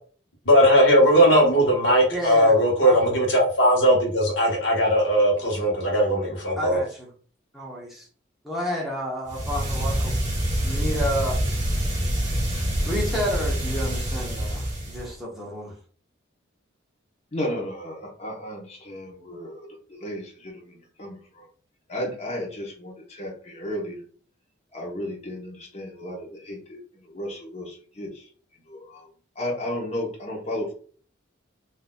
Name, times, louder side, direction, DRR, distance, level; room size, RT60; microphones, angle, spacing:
voice 1, 0.5-6.8, equal, 65° left, 1.2 m, -19 dB
voice 2, 2.1-3.2 6.6-7.1 7.5-8.1 8.4-10.1 10.6-11.4 12.5-15.7, equal, ahead, 0.9 m, -31 dB
sound 1, 9.3-15.2, right 1 dB, 35° right, 1.4 m, -26 dB
voice 3, 17.3-21.5 21.9-24.0 24.7-28.3 28.7-29.1 29.3-30.7, left 1 dB, 35° left, 0.9 m, -34 dB
3.8 x 2.6 x 2.3 m
head